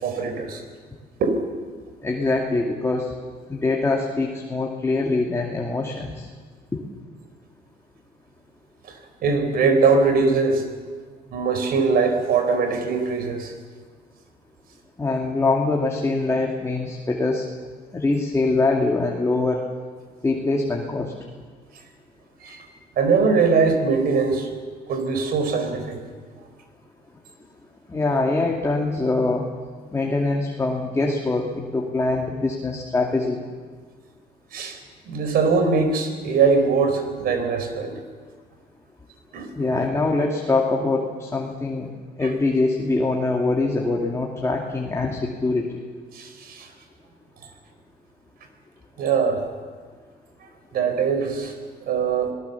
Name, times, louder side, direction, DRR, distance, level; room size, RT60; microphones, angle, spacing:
voice 1, 0.0-0.6 1.2-1.4 8.8-10.6 11.3-13.5 22.4-22.7 23.0-24.5 24.9-26.0 34.5-34.8 35.1-38.0 39.3-39.8 42.2-42.3 46.1-46.7 49.0-49.4 50.7-51.5 51.8-52.3, right 4 dB, 65° right, 7 dB, 4.5 m, -21 dB
voice 2, 2.0-3.1 3.5-6.3 6.7-6.8 15.0-17.4 17.9-19.6 20.2-21.1 27.9-29.5 29.9-33.4 39.6-41.9 42.2-45.8, left 3 dB, 15° left, 0 dB, 2.4 m, -23 dB
26.0 x 18.5 x 7.2 m, 1.5 s
cardioid pair, 110°, 17 cm